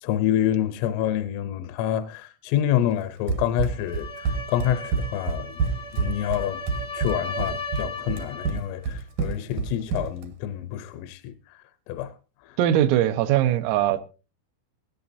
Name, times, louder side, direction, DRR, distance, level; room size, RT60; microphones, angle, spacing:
voice 1, 0.0-5.6 5.9-6.6 6.9-11.3 11.9-12.1 12.5-12.6, left 11 dB, 80° left, 3.3 m, -27 dB
Run, 3.3-10.3, right 5 dB, 70° right, 1.9 m, -28 dB
sound 1, 3.7-8.6, left 3 dB, 30° left, 0.7 m, -36 dB
voice 2, 12.6-14.0, right 11 dB, 85° right, 3.6 m, -21 dB
17.0 x 17.0 x 2.7 m
omnidirectional pair, 5.8 m